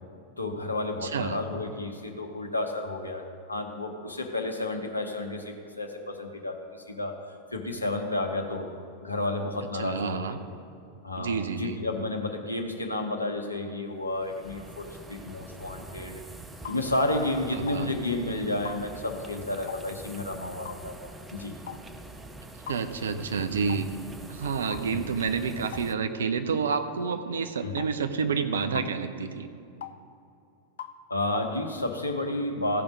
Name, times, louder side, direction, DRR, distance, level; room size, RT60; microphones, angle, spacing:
voice 1, 0.4-7.2 7.5-8.7 9.0-10.2 11.0-16.2 16.7-21.6 24.9-25.1 27.6-27.8 31.1-32.8, left 2 dB, 85° left, 4 dB, 1.0 m, -31 dB
voice 2, 1.0-1.4 9.7-10.4 11.2-11.8 17.5-17.9 22.7-23.9 24.3-29.5, right 5 dB, 65° right, 8 dB, 0.6 m, -29 dB
sound 1, 14.0-25.9, right 1 dB, 10° right, 0.7 m, -45 dB
sound 2, 16.6-16.8 17.7-17.8 18.6-18.8 19.7-19.9 20.6-20.8 21.7-21.8 22.7-22.8 23.7-23.9 24.7-24.9 25.7-25.9 26.7-26.9 27.8-27.9 28.7-28.9 29.8-30.0 30.8-31.0, left 8 dB, 65° left, 0.5 m, -40 dB
15.5 x 5.2 x 5.3 m, 2.5 s
figure-of-eight pair, 90°, 0 cm